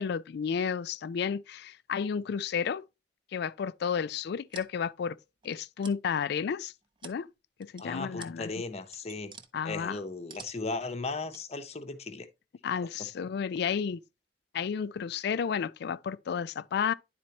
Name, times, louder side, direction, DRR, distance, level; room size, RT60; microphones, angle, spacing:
voice 1, 0.0-2.8 3.3-5.2 5.4-6.7 7.0-7.3 7.6-8.5 9.5-10.0 12.6-14.0 14.5-16.9, left 6 dB, 60° left, 0.3 m, -32 dB
sound 1, 4.1-4.7 5.4-6.0 6.5-7.3 7.6-7.8 8.2-8.3 8.7-9.5 9.9-10.7 11.3-11.4, right 5 dB, 25° right, 0.6 m, -48 dB
voice 2, 7.8-9.3 9.6-12.3, left 3 dB, 35° left, 0.8 m, -36 dB
10.5 x 4.3 x 2.9 m
head